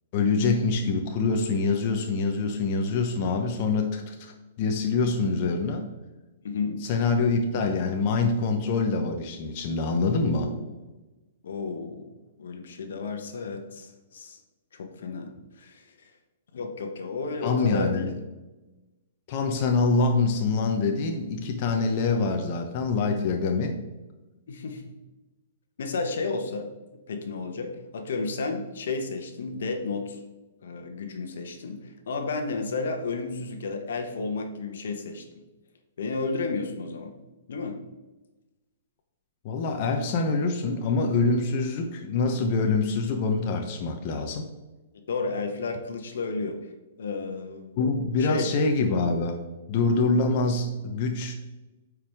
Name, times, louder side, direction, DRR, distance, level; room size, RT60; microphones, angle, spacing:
voice 1, 0.1-4.3 4.6-5.8 6.8-10.5 17.4-18.2 19.3-23.8 39.4-44.5 47.8-49.4 49.7-51.3, left 4 dB, 45° left, 4 dB, 0.8 m, -25 dB
voice 2, 6.4-6.8 10.1-10.8 11.4-12.1 12.4-14.4 14.7-16.1 16.5-18.1 24.5-24.8 25.8-26.7 27.1-30.2 30.6-35.3 36.0-37.1 37.5-37.8 45.1-46.6 47.0-47.7 48.2-48.5, left 4 dB, 75° left, 5 dB, 1.1 m, -32 dB
8.6 x 4.8 x 3.6 m, 1.1 s
hypercardioid pair, 135°, 0 cm